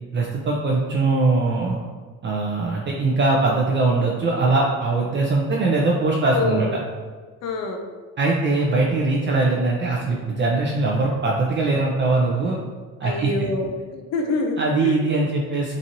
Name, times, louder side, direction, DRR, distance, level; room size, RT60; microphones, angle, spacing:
voice 1, 0.1-1.8 2.2-6.7 8.2-12.6 13.0-13.3 14.6-15.8, right 3 dB, 35° right, -2 dB, 0.4 m, -21 dB
voice 2, 6.3-6.6 7.4-7.8 13.0-15.0, left 3 dB, 55° left, 3 dB, 0.5 m, -26 dB
2.9 x 2.6 x 2.6 m, 1.4 s
cardioid pair, 95°, 31 cm